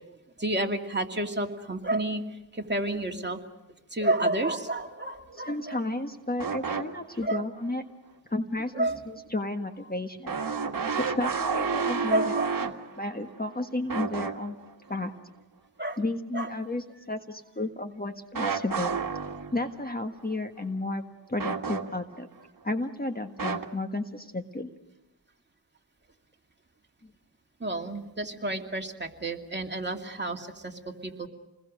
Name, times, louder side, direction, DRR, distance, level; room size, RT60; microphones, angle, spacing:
voice 1, 0.4-2.2 2.5-3.4 3.9-5.8 7.2-7.4 8.7-9.0 12.1-12.5 15.8-16.0 16.3-16.5 27.6-31.3, right 2 dB, 25° right, 2 dB, 2.5 m, -30 dB
voice 2, 5.3-7.8 8.3-10.3 10.9-12.3 13.0-14.6 14.9-15.1 16.0-19.0 19.5-21.0 21.3-22.3 22.6-24.7, left 2 dB, 20° left, 6 dB, 1.5 m, -32 dB
sound 1, 6.4-7.3 7.7-7.8 10.3-13.5 13.9-14.7 18.3-19.9 21.4-22.2 23.4-23.6, right 5 dB, 55° right, 1.9 m, -31 dB
29.0 x 21.0 x 6.4 m, 0.98 s
cardioid pair, 70°, 41 cm